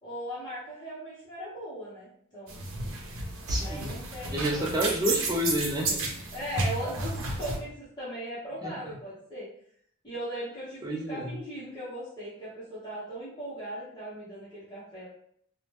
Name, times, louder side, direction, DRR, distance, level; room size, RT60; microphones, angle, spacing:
voice 1, 0.0-2.6 3.6-4.7 5.1-5.2 6.3-9.5 10.0-15.1, equal, 20° left, -10 dB, 0.8 m, -38 dB
sound 1, 2.5-7.6, right 2 dB, 80° right, 0.6 m, -32 dB
voice 2, 3.5-3.9 4.3-6.1 8.6-8.8 10.8-11.3, equal, 20° right, -2 dB, 0.4 m, -29 dB
2.8 x 2.1 x 3.1 m, 0.65 s
head